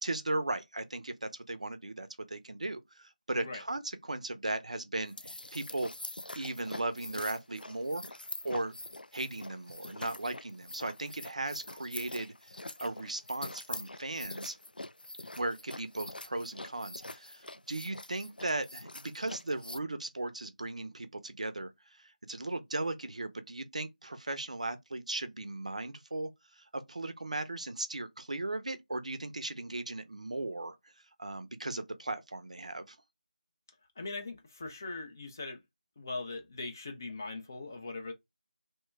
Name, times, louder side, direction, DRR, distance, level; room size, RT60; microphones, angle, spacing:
voice 1, 0.0-5.9 6.3-8.2 8.4-8.7 9.1-12.3 12.8-14.6 15.4-21.7 22.0-26.3 26.6-30.8 31.2-33.0, right 2 dB, 50° right, 0.5 m, -37 dB
sound 1, 5.0-19.8, left 2 dB, 90° left, 0.3 m, -44 dB
voice 2, 34.0-35.6 36.0-38.1, left 3 dB, 20° left, 0.5 m, -40 dB
3.1 x 2.2 x 3.2 m
figure-of-eight pair, 165°, 5 cm